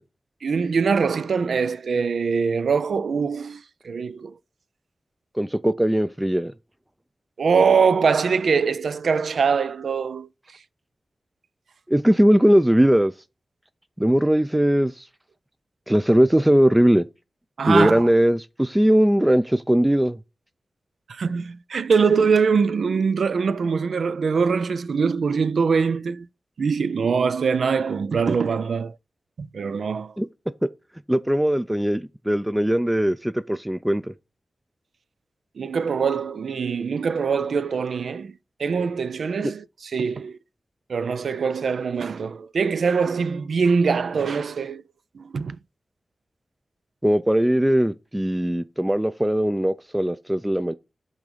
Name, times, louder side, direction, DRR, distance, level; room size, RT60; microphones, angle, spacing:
voice 1, 0.4-4.4 7.4-10.3 17.6-18.1 21.1-26.3 26.6-28.9 29.4-30.1 35.6-38.3 38.6-40.4 40.9-44.8 45.1-45.6, right 5 dB, 85° right, 0.3 m, -23 dB
voice 2, 5.3-6.5 11.9-13.1 14.0-15.1 15.9-17.1 17.7-20.2 30.2-30.3 31.1-34.1 47.0-50.7, equal, 10° right, 0.4 m, -20 dB
6.0 x 3.9 x 5.0 m
cardioid pair, 50°, 0 cm